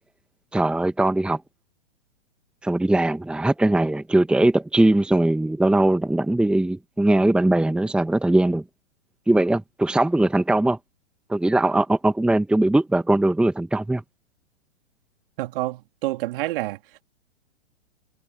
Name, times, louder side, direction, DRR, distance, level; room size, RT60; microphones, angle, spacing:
voice 1, 0.5-1.4 2.6-8.6 9.3-10.8 11.3-14.0, right 1 dB, 5° right, 1.4 m, -20 dB
voice 2, 15.4-16.8, right 18 dB, 50° right, 3.5 m, -28 dB
hypercardioid pair, 120°, 36 cm